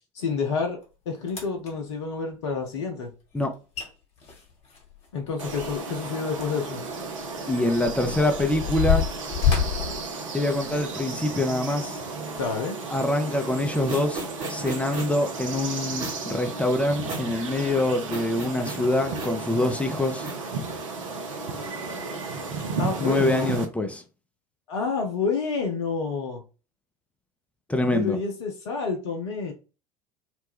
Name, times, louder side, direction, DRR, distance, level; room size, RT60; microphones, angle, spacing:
voice 1, 0.1-0.8 1.1-3.1 5.1-6.8 12.4-12.8 22.8-23.5 24.7-26.4 27.9-29.5, left 5 dB, 65° left, 0.5 m, -29 dB
sound 1, 0.8-0.9 1.3-1.7 3.4-3.5 3.7-3.9 4.2-6.0 6.3-6.5 7.2-10.9 11.5-11.8 12.4-12.5, left 7 dB, 35° left, 1.0 m, -28 dB
sound 2, 5.4-23.7, right 4 dB, 70° right, 0.6 m, -34 dB
voice 2, 7.5-9.0 10.3-12.0 12.9-14.2 14.5-20.3 23.0-24.0 27.7-28.2, left 1 dB, 5° left, 0.5 m, -25 dB
sound 3, 13.4-21.0, right 2 dB, 45° right, 1.2 m, -38 dB
2.4 x 2.1 x 3.3 m
figure-of-eight pair, 70°, 17 cm